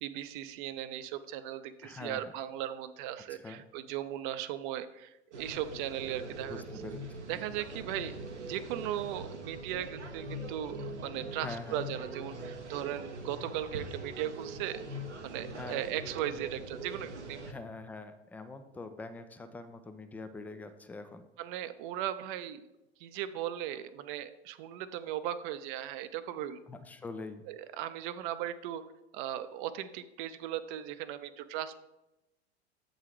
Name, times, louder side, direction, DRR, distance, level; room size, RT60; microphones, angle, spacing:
voice 1, 0.0-6.6 7.3-8.1 8.5-14.8 15.2-17.4 21.4-22.6 23.0-26.6 27.5-28.8 29.1-31.7, right 11 dB, 50° right, 13 dB, 0.6 m, -37 dB
voice 2, 1.8-2.3 3.4-3.6 6.5-7.0 11.4-11.8 15.6-15.8 17.5-21.3 26.7-27.4, left 3 dB, 5° left, 9 dB, 0.3 m, -44 dB
sound 1, 5.3-17.5, right 2 dB, 90° right, 0.9 m, -42 dB
8.1 x 3.9 x 4.7 m, 0.94 s
figure-of-eight pair, 90°, 34 cm